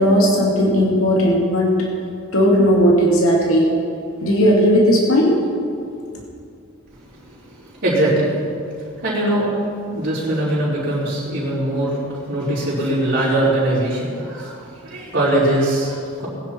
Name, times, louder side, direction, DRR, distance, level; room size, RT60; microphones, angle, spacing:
voice 1, 0.0-1.9 2.3-3.7 4.2-5.4, equal, 75° left, -2 dB, 2.3 m, -16 dB
voice 2, 7.1-8.3 9.0-9.5 9.9-16.3, right 1 dB, 50° right, -14 dB, 4.2 m, -21 dB
20.0 x 10.5 x 4.5 m, 2.4 s
head